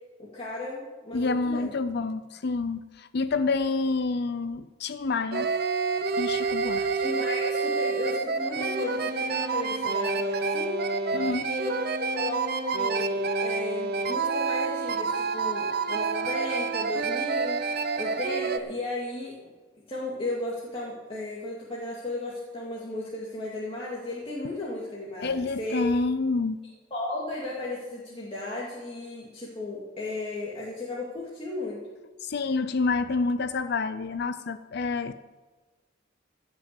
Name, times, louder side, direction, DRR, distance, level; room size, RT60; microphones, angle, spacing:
voice 1, 0.2-1.7 6.9-10.8 11.2-19.5 19.9-25.9 26.9-31.8, left 2 dB, 30° left, -6 dB, 2.3 m, -35 dB
voice 2, 1.1-5.5 6.2-6.9 11.1-11.5 25.2-26.6 32.2-35.1, left 3 dB, 55° left, 13 dB, 0.5 m, -28 dB
sound 1, 5.3-18.6, right 4 dB, 55° right, 0.8 m, -28 dB
16.5 x 6.0 x 8.2 m, 1.3 s
head